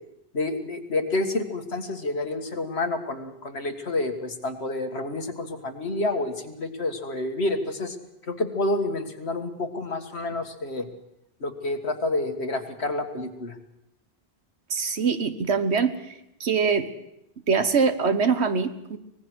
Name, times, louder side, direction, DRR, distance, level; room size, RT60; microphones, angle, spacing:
voice 1, 0.3-8.0 8.2-10.9 11.4-13.6, left 2 dB, 75° left, 6 dB, 2.1 m, -29 dB
voice 2, 14.7-16.1 16.4-16.9 17.5-19.0, right 5 dB, 80° right, 10 dB, 1.6 m, -23 dB
24.5 x 19.5 x 6.3 m, 0.83 s
omnidirectional pair, 1.1 m